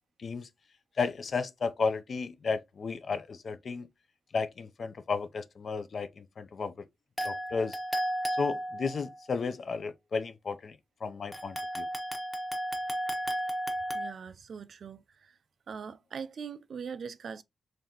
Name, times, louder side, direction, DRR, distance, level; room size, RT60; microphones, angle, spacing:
voice 1, 1.0-3.9 4.3-6.8 7.2-7.8 8.4-11.9, left 4 dB, 50° left, 0.4 m, -33 dB
sound 1, 7.2-9.2 11.3-14.1, equal, 10° left, 0.8 m, -33 dB
voice 2, 13.9-15.3 15.7-17.4, right 6 dB, 55° right, 0.3 m, -41 dB
3.9 x 3.3 x 2.8 m
wide cardioid pair, 135°, 0 cm